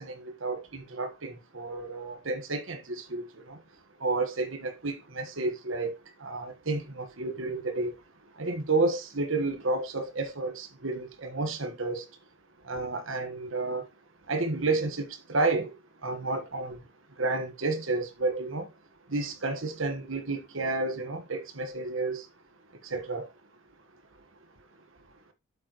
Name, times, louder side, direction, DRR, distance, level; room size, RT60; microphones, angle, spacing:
voice 1, 0.0-3.6 4.0-5.9 6.2-7.9 8.4-12.0 12.7-13.8 14.3-15.7 16.0-16.8 17.2-18.7 19.1-22.2 22.9-23.3, right 3 dB, 70° right, 1.5 m, -31 dB
8.1 x 7.5 x 3.1 m
head